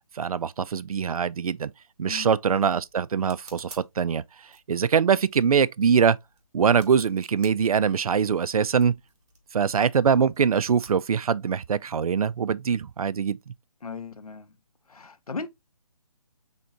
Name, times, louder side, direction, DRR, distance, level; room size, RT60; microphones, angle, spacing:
voice 1, 0.2-1.7 2.0-4.2 4.7-6.2 6.5-8.9 9.5-13.5, right 6 dB, 75° right, 0.4 m, -23 dB
sound 1, 1.9-11.8, right 3 dB, 50° right, 1.6 m, -54 dB
voice 2, 13.8-14.5 14.9-15.5, left 4 dB, 85° left, 0.7 m, -37 dB
4.1 x 3.6 x 2.8 m
figure-of-eight pair, 150°, 19 cm